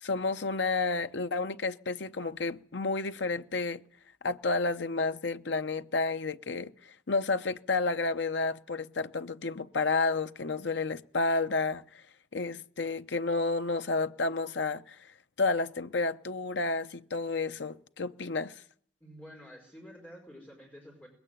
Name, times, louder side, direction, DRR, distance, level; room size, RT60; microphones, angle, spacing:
voice 1, 0.0-3.8 4.2-12.0 12.3-15.1 15.4-18.5, left 3 dB, 65° left, 0.8 m, -31 dB
voice 2, 19.0-21.1, equal, 10° left, 4.9 m, -49 dB
20.5 x 16.0 x 9.0 m
head